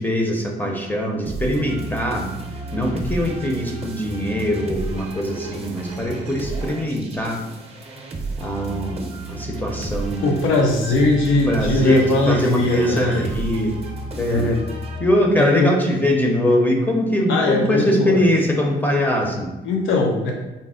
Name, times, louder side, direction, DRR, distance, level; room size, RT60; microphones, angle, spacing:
voice 1, 0.0-2.3 2.7-7.4 8.4-10.4 11.5-13.8 14.2-14.6 15.0-19.5, equal, 10° left, 0 dB, 0.6 m, -22 dB
sound 1, 1.3-15.5, right 3 dB, 30° right, 0.7 m, -32 dB
voice 2, 10.2-13.2 14.3-14.6 15.4-15.7 17.3-18.3 19.6-20.3, left 2 dB, 80° left, 0 dB, 0.6 m, -20 dB
4.1 x 2.0 x 3.6 m, 1.1 s
cardioid pair, 90°, 20 cm